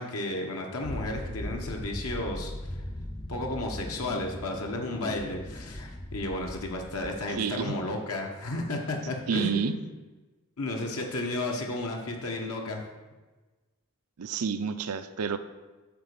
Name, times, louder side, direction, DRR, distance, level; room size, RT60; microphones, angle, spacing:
voice 1, 0.0-2.5 3.3-9.8 10.6-12.8, left 2 dB, 70° left, 1 dB, 1.1 m, -33 dB
sound 1, 0.8-7.6, left 1 dB, 15° left, 0.5 m, -39 dB
voice 2, 7.4-7.7 9.3-9.7 14.2-15.4, right 6 dB, 80° right, 10 dB, 0.6 m, -29 dB
9.5 x 4.0 x 6.8 m, 1.2 s
head